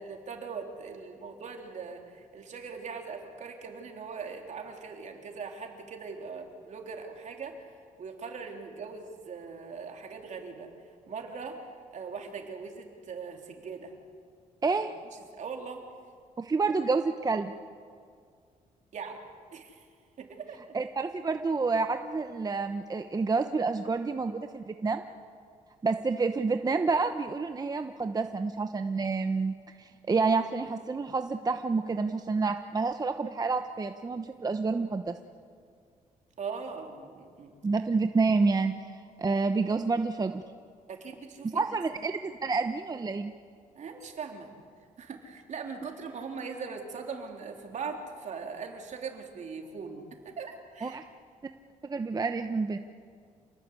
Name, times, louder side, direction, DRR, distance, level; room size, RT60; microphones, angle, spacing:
voice 1, 0.0-7.7 8.0-10.7 11.1-11.6 11.9-13.9 15.3-15.8 18.9-19.2 19.5-19.8 20.2-20.6 36.4-37.6 40.9-41.8 43.8-44.5 45.0-51.0, right 5 dB, 55° right, 2 dB, 3.6 m, -40 dB
voice 2, 14.6-14.9 16.4-17.5 20.7-25.0 25.8-35.2 37.6-40.4 41.5-43.3 50.8-51.0 51.8-52.8, right 4 dB, 25° right, 7 dB, 1.0 m, -29 dB
28.0 x 19.5 x 8.3 m, 2.2 s
cardioid pair, 95°, 14 cm